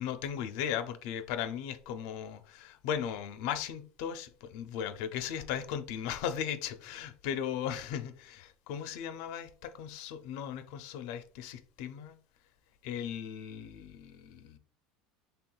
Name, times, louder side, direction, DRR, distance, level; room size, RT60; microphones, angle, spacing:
voice 1, 0.0-12.2 12.8-14.6, left 9 dB, 60° left, 0.4 m, -37 dB
4.4 x 3.3 x 2.3 m
cardioid pair, 165°, 0 cm